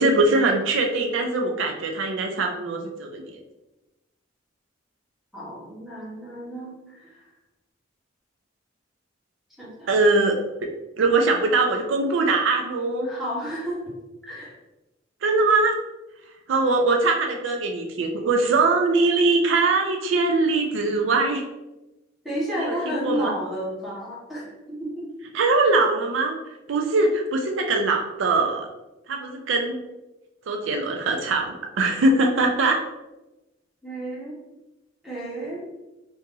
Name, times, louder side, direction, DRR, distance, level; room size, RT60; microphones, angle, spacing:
voice 1, 0.0-3.4 9.9-10.7 11.0-13.1 15.2-15.8 16.5-21.4 22.6-23.3 25.3-26.4 26.7-28.7 29.1-29.8 30.5-32.8, right 3 dB, 70° right, 2 dB, 0.4 m, -22 dB
voice 2, 5.3-7.2 9.6-9.9 13.0-13.8 14.2-14.5 22.2-25.1 33.8-34.4 35.0-35.6, right 1 dB, ahead, -8 dB, 1.3 m, -32 dB
2.8 x 2.6 x 3.7 m, 1.0 s
head